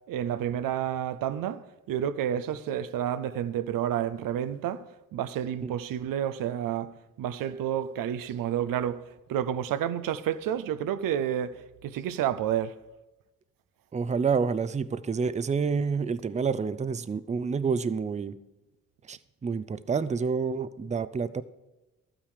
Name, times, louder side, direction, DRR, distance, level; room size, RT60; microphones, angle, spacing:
voice 1, 0.1-4.8 5.1-9.0 9.3-12.8, right 10 dB, 85° right, 0.6 m, -30 dB
voice 2, 13.9-18.4 19.1-21.4, right 5 dB, 20° right, 0.5 m, -28 dB
12.0 x 8.9 x 4.9 m
cardioid pair, 80°, 33 cm